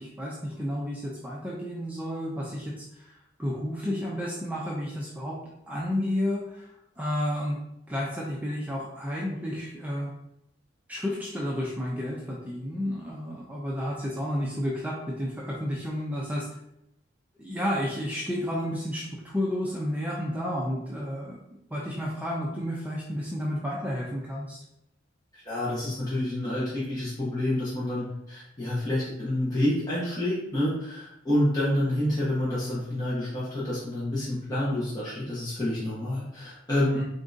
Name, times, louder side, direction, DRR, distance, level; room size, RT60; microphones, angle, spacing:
voice 1, 0.0-5.4 5.7-6.7 7.0-7.6 7.9-10.1 10.9-16.5 17.4-21.4 21.7-24.6 36.9-37.0, equal, 10° right, -4 dB, 0.5 m, -31 dB
voice 2, 25.3-37.0, left 1 dB, 20° left, -9 dB, 1.1 m, -28 dB
3.7 x 3.7 x 2.6 m, 0.81 s
head